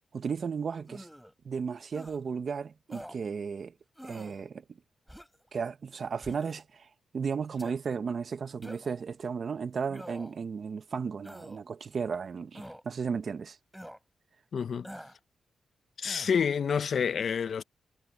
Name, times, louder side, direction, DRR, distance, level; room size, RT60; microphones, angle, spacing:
voice 1, 0.1-1.1 1.4-3.7 4.0-4.6 5.5-6.9 7.1-13.6, right 6 dB, 60° right, 0.9 m, -34 dB
sound 1, 0.9-1.3 1.9-2.2 2.9-3.2 4.0-4.4 5.1-5.5 6.2-6.6 7.6-7.8 8.6-9.0 9.9-10.4 11.2-11.6 12.5-12.8 13.7-14.0 14.8-15.2 16.0-16.4, equal, ahead, 4.5 m, -46 dB
voice 2, 14.5-14.9 16.0-17.6, left 7 dB, 65° left, 0.8 m, -28 dB
cardioid pair, 70°, 0 cm